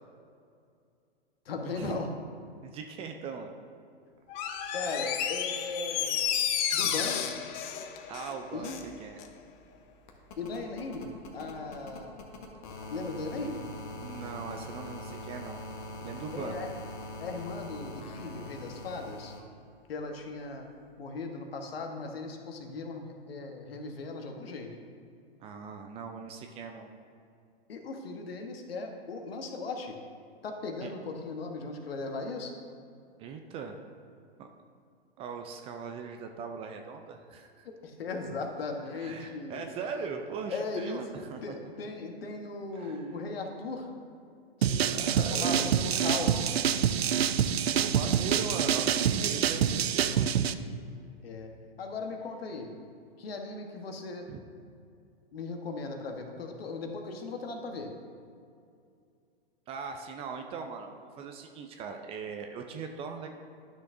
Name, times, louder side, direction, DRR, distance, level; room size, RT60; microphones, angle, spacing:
voice 1, 1.4-2.1 4.7-6.2 6.7-7.3 8.5-8.8 10.4-12.2 12.9-13.6 16.3-16.7 17.2-19.4 19.9-20.7 21.0-24.7 27.7-30.0 30.4-32.5 37.6-39.6 40.5-41.0 41.4-43.9 44.6-46.6 51.2-51.5 51.8-52.7 53.2-54.3 55.3-57.9, left 3 dB, 70° left, 3 dB, 1.2 m, -37 dB
voice 2, 2.6-3.5 8.1-9.2 14.0-15.6 16.0-16.6 25.4-26.9 30.8-30.9 33.2-33.8 34.4-34.5 35.2-37.7 38.9-41.6 42.7-43.0 44.8-45.8 47.7-50.3 54.3-54.4 59.7-63.3, right 5 dB, 20° right, 5 dB, 0.4 m, -40 dB
Door, 4.3-8.9 9.2-9.3, left 9 dB, 30° left, 0.6 m, -31 dB
sound 1, 8.5-19.4 20.8-20.9, left 1 dB, 50° left, 1.3 m, -43 dB
sound 2, 44.6-50.5, right 8 dB, 80° right, 0.5 m, -26 dB
12.0 x 6.3 x 2.6 m, 2.4 s
hypercardioid pair, 110°, 31 cm